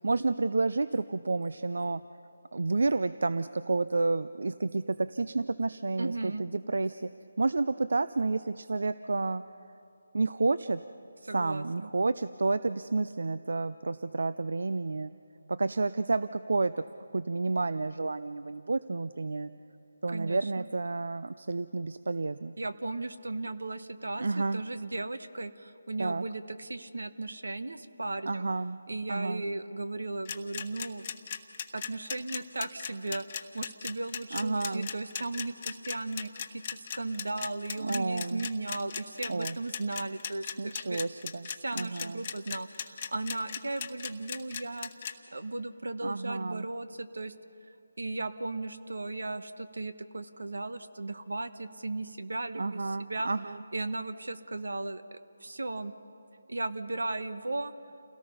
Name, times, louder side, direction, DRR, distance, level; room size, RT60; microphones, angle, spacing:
voice 1, 0.0-2.0 2.5-7.1 7.4-9.4 10.1-10.8 11.3-15.1 15.5-16.8 17.1-19.5 20.0-22.5 24.2-24.6 26.0-26.2 28.3-28.8 29.1-29.5 34.3-34.9 37.8-38.5 39.3-39.6 40.6-41.5 41.7-42.3 46.0-46.7 52.6-53.6, right 3 dB, 70° right, 14 dB, 0.5 m, -30 dB
voice 2, 6.0-6.4 11.2-11.9 20.1-20.7 22.6-28.5 28.9-31.1 31.7-41.0 41.6-47.3 48.0-53.3 53.7-55.9 56.5-57.7, right 2 dB, 85° right, 11 dB, 1.2 m, -36 dB
sound 1, 30.2-45.1, left 7 dB, 30° left, 1.0 m, -37 dB
29.0 x 18.0 x 5.6 m, 2.7 s
figure-of-eight pair, 165°, 0 cm